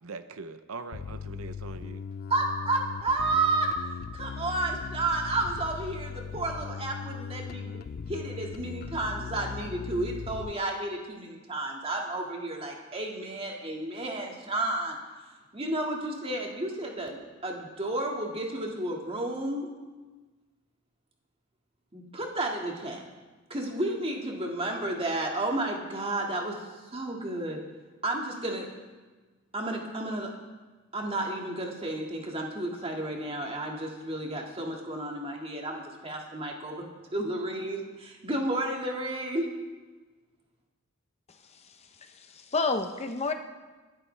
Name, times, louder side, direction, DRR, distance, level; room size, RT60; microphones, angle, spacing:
voice 1, 0.0-2.0, right 4 dB, 85° right, 10 dB, 0.7 m, -41 dB
Bass guitar, 0.9-10.5, left 6 dB, 45° left, 0.3 m, -39 dB
voice 2, 2.3-3.7 4.1-7.8 8.1-15.0 15.5-19.7 21.9-23.0 23.5-26.6 26.9-27.6 28.0-28.7 29.5-30.3 30.9-36.8 37.1-39.5, right 2 dB, 30° right, 0 dB, 2.0 m, -32 dB
voice 3, 41.3-43.3, left 3 dB, 30° left, 7 dB, 0.8 m, -31 dB
22.5 x 12.0 x 3.4 m, 1.3 s
head